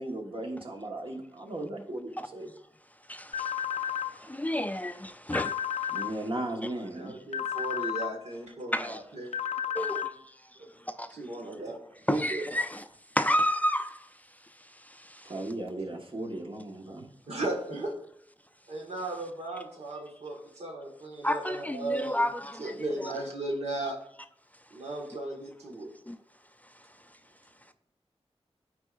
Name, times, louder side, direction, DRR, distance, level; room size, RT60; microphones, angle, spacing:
voice 1, 0.0-2.5 5.9-7.2 15.2-17.1, right 1 dB, 55° right, 1.3 m, -36 dB
voice 2, 3.1-6.0 8.7-9.0 9.7-10.1 10.9-11.1 12.1-12.8 13.2-14.1 14.8-15.3 21.2-23.1 26.1-26.2, equal, 15° left, 0.4 m, -31 dB
sound 1, 3.3-4.1 5.3-6.1 7.3-8.1 9.3-10.1, left 9 dB, 90° left, 0.4 m, -32 dB
voice 3, 6.7-9.3 10.6-10.7 11.1-11.8 12.1-12.5 17.3-17.9 18.7-22.2 22.6-24.0 24.7-25.9, right 2 dB, 85° right, 1.5 m, -36 dB
12.5 x 4.6 x 2.4 m
wide cardioid pair, 75°, 11 cm